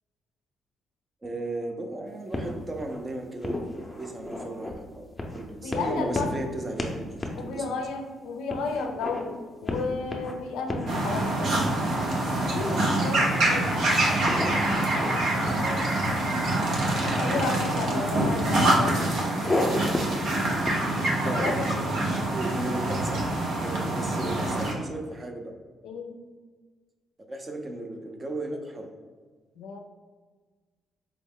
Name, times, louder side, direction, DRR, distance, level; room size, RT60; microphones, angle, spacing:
voice 1, 1.2-3.6 4.0-7.6 13.1-13.4 18.2-18.3 21.1-23.2 23.6-25.5 27.3-28.9, right 2 dB, 30° right, 4 dB, 0.5 m, -35 dB
sound 1, 2.3-3.0 3.4-4.7 5.2-5.4 5.7-6.5 6.8-6.9 7.2-7.4 7.8-7.9 8.5-9.2 9.7-10.3 10.7-10.9 11.5-12.0 12.4-13.6 14.3-15.2 15.4-16.3 17.3-17.5 17.8-18.3 18.9-19.7 19.9-20.2 20.6-21.7, left 2 dB, 15° left, 0.6 m, -33 dB
voice 2, 5.2-6.3 7.4-11.6 12.5-14.0 16.8-19.1 21.2-21.8 25.8-26.2 29.6-29.8, left 4 dB, 90° left, 4 dB, 0.4 m, -33 dB
sound 2, 10.9-24.7, right 1 dB, 75° right, 0.7 m, -25 dB
4.6 x 2.0 x 3.6 m, 1.4 s
cardioid pair, 90°, 0 cm